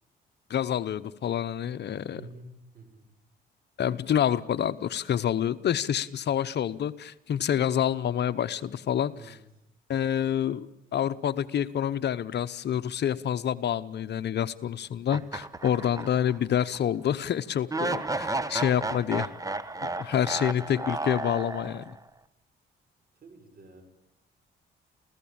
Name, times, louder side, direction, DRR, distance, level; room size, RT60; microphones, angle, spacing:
voice 1, 0.5-2.2 3.8-9.1 9.9-10.7 10.9-19.3 19.8-21.9, left 9 dB, 60° left, 14 dB, 0.9 m, -27 dB
voice 2, 2.1-3.1 9.1-9.4 23.1-23.8, right 3 dB, 45° right, 7 dB, 6.6 m, -49 dB
sound 1, 15.1-16.4 16.7-16.8 17.7-22.0, right 2 dB, 15° right, 1.2 m, -33 dB
28.0 x 16.0 x 8.8 m, 0.86 s
cardioid pair, 90°, 20 cm